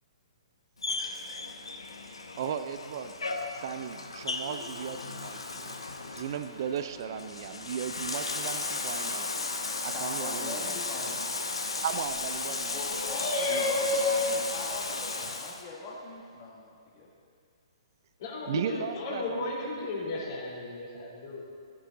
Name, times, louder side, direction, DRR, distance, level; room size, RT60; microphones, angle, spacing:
Bathtub (filling or washing), 0.8-15.6, left 3 dB, 75° left, 1.0 m, -35 dB
voice 1, 2.4-3.4 3.6-5.7 6.2-9.3 9.8-10.7 11.8-12.8 18.5-19.4 19.9-20.0, right 8 dB, 50° right, 10 dB, 0.5 m, -36 dB
voice 2, 9.8-11.2 12.7-17.1, left 2 dB, 30° left, -3 dB, 1.6 m, -41 dB
voice 3, 12.9-14.2 18.2-21.4, left 2 dB, 45° left, -5 dB, 3.5 m, -32 dB
14.0 x 11.0 x 4.0 m, 2.3 s
figure-of-eight pair, 120°, 3 cm